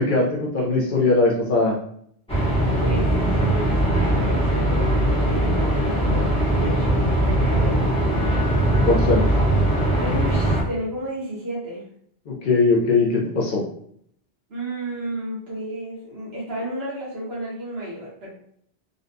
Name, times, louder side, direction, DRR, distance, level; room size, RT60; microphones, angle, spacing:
voice 1, 0.0-1.8 8.8-9.3 12.3-13.1 13.3-13.6, left 3 dB, 60° left, -2 dB, 0.7 m, -20 dB
sound 1, 2.3-10.6, right 1 dB, 5° left, 0.8 m, -20 dB
voice 2, 2.8-7.9 10.0-11.8 14.5-18.3, right 1 dB, 75° right, -6 dB, 1.3 m, -32 dB
3.8 x 2.2 x 2.6 m, 0.66 s
omnidirectional pair, 1.0 m